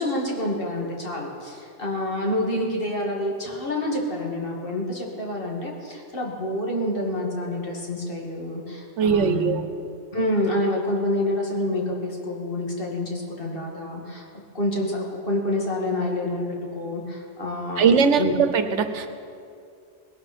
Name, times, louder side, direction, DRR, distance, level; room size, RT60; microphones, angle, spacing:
voice 1, 0.0-9.6 10.1-14.3 14.5-16.4 16.7-18.3, left 1 dB, 50° left, -1 dB, 2.3 m, -27 dB
voice 2, 9.0-9.7 17.8-19.1, right 6 dB, 80° right, 9 dB, 1.2 m, -20 dB
19.5 x 11.5 x 4.3 m, 2.4 s
omnidirectional pair, 1.2 m